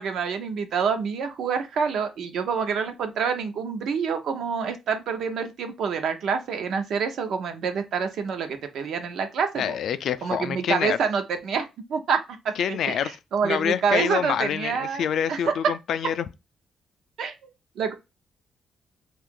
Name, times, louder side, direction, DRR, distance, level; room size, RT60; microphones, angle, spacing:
voice 1, 0.0-9.8 10.2-15.4 17.2-17.5 17.8-17.9, right 6 dB, 70° right, 0.7 m, -27 dB
voice 2, 9.6-11.0 12.6-13.2 13.4-16.3, left 8 dB, 65° left, 0.3 m, -26 dB
2.8 x 2.4 x 3.6 m
cardioid pair, 140°, 0 cm